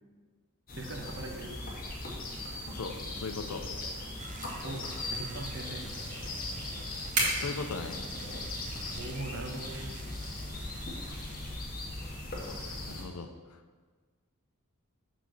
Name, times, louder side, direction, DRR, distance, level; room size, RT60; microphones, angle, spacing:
sound 1, 0.7-13.0, left 2 dB, 40° left, 1.3 m, -39 dB
voice 1, 0.8-1.5 4.6-4.8 5.1-5.8 9.0-9.9, right 2 dB, 55° right, 3 dB, 0.9 m, -40 dB
sound 2, 0.9-12.8, right 2 dB, 75° right, 2.1 m, -41 dB
voice 2, 2.7-3.6 7.4-8.0 12.9-13.6, left 4 dB, 70° left, 7 dB, 0.6 m, -38 dB
sound 3, 4.2-11.6, right 5 dB, 35° right, 0.6 m, -50 dB
7.0 x 4.2 x 6.0 m, 1.4 s
head